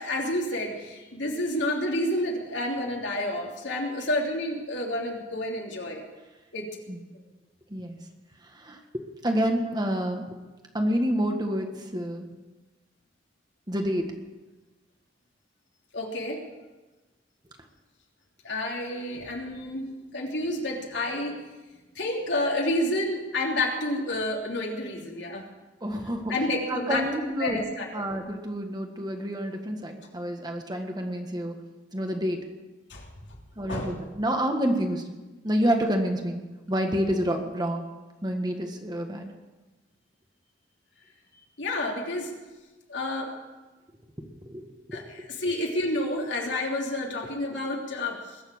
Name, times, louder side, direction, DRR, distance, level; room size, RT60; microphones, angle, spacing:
voice 1, 0.0-6.0 6.5-6.6 15.9-16.4 18.4-21.4 21.9-25.4 26.3-27.0 27.4-28.0 32.9-33.1 33.7-33.9 41.6-42.3 42.9-43.3 44.9-48.4, left 1 dB, 80° left, -1 dB, 3.3 m, -29 dB
voice 2, 9.2-10.2 10.7-12.3 13.7-14.0 25.8-26.3 26.7-27.6 27.9-31.5 31.9-32.4 33.6-35.0 35.4-36.4 36.7-37.8 38.2-39.3 44.5-44.6 44.9-45.0, equal, 25° right, 3 dB, 1.7 m, -28 dB
21.5 x 7.3 x 8.8 m, 1.2 s
head